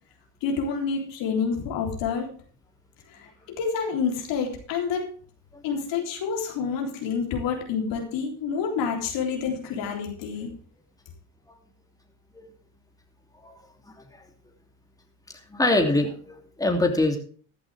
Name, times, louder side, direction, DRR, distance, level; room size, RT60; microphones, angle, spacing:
voice 1, 0.4-2.3 3.1-5.1 5.6-10.6, left 6 dB, 85° left, 1 dB, 3.7 m, -28 dB
voice 2, 15.5-17.2, left 2 dB, 10° left, 3 dB, 2.9 m, -23 dB
14.5 x 11.0 x 3.5 m, 0.43 s
cardioid pair, 90°, 43 cm